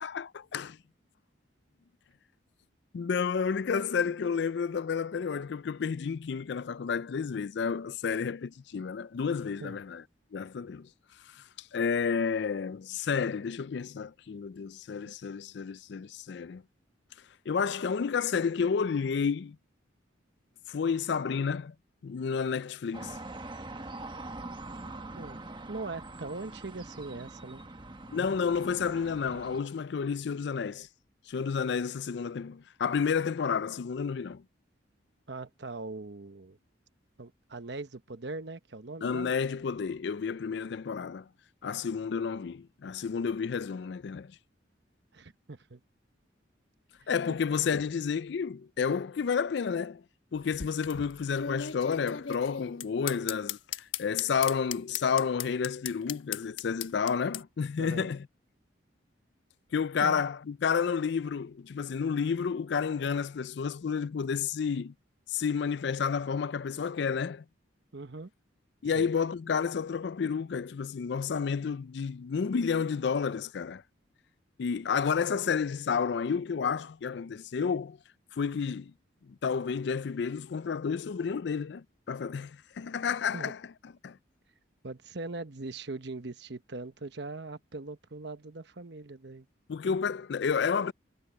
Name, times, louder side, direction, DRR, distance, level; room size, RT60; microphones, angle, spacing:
voice 1, 0.0-0.8 2.9-10.0 10.3-10.9 11.3-16.6 17.5-19.6 20.7-21.7 22.0-23.2 28.1-30.9 31.3-34.4 39.0-41.3 41.6-44.4 47.1-50.0 50.3-58.3 59.7-64.9 65.3-67.4 68.8-73.8 74.6-78.0 78.3-78.9 79.3-83.6 84.0-84.2 89.7-90.9, left 6 dB, 60° left, 0.4 m, -31 dB
sound 1, 22.9-29.6, right 2 dB, 25° right, 1.2 m, -43 dB
voice 2, 25.1-27.6 35.3-36.6 37.2-39.3 45.1-45.8 47.0-47.1 57.8-58.1 60.0-60.2 67.9-68.3 68.9-69.1 83.3-83.5 84.8-89.5, right 3 dB, 60° right, 1.1 m, -41 dB
sound 2, 50.3-57.4, left 9 dB, 90° left, 1.2 m, -37 dB
head